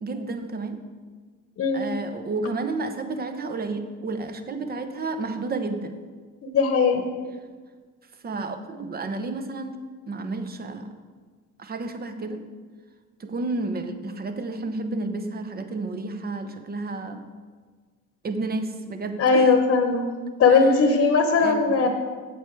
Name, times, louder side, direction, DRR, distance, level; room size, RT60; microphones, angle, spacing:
voice 1, 0.0-0.8 1.7-5.9 8.2-10.9 11.6-12.5 13.2-17.3 18.2-19.6 20.5-20.8 21.4-21.9, right 3 dB, 30° right, 8 dB, 0.8 m, -31 dB
voice 2, 6.5-7.1 19.2-20.0 20.4-21.9, left 4 dB, 45° left, 5 dB, 1.0 m, -19 dB
7.8 x 7.8 x 4.6 m, 1.5 s
cardioid pair, 105°, 31 cm